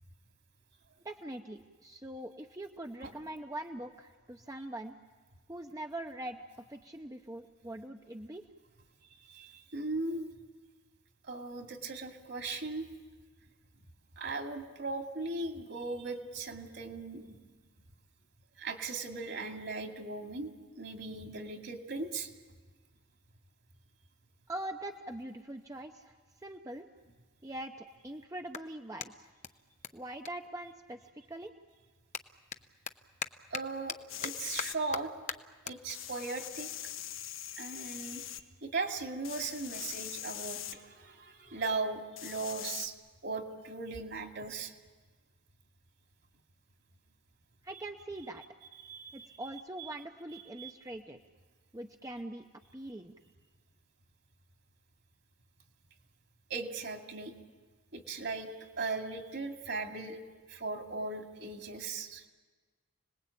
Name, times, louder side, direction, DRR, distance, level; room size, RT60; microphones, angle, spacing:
voice 1, 1.0-5.0 5.5-8.4 24.5-26.1 26.4-26.9 27.4-29.3 29.9-31.0 31.3-31.5 47.6-48.4 49.1-51.2 51.7-52.4 52.7-53.1, right 1 dB, 15° right, 4 dB, 0.8 m, -42 dB
voice 2, 9.2-10.3 11.2-12.9 14.2-17.5 18.6-22.3 33.5-35.1 35.6-36.7 37.6-42.9 43.2-44.7 48.8-49.4 50.3-50.7 56.5-57.3 57.9-58.5 58.8-60.2 60.5-62.3, right 3 dB, 60° right, 3 dB, 2.5 m, -38 dB
Clapping, 27.6-31.2 31.5-38.2, left 7 dB, 35° left, 0.8 m, -44 dB
sound 1, 34.1-34.8 35.9-38.4 39.2-40.7 42.2-42.9, left 11 dB, 85° left, 1.3 m, -42 dB
30.0 x 20.0 x 8.6 m, 1.4 s
head